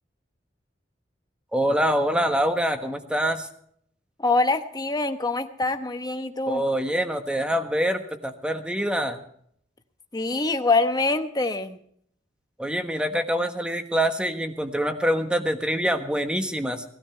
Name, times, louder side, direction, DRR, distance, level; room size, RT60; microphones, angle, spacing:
voice 1, 1.5-3.5 6.5-9.2 12.6-16.8, equal, 5° right, 7 dB, 1.3 m, -25 dB
voice 2, 4.2-6.6 10.1-11.8, left 3 dB, 20° left, 8 dB, 1.0 m, -24 dB
18.5 x 13.0 x 4.5 m, 0.65 s
head